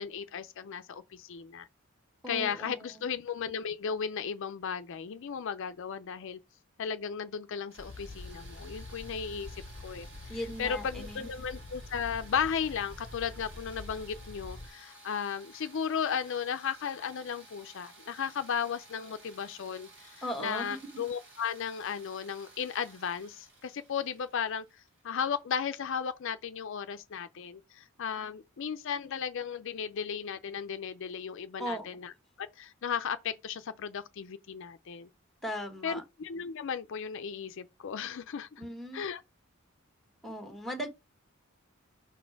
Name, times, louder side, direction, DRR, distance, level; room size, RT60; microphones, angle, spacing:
voice 1, 0.0-1.7 2.3-6.4 6.8-32.1 32.4-35.1 35.8-38.6 38.9-39.2, left 7 dB, 65° left, 0.5 m, -35 dB
voice 2, 2.2-3.0 10.3-11.3 20.2-21.0 31.6-31.9 35.4-36.0 38.6-39.0 40.2-40.9, equal, ahead, 1.3 m, -38 dB
sound 1, 7.7-25.4, right 2 dB, 65° right, 4.2 m, -55 dB
sound 2, 7.8-14.7, left 2 dB, 30° left, 0.7 m, -46 dB
5.6 x 4.2 x 4.5 m
head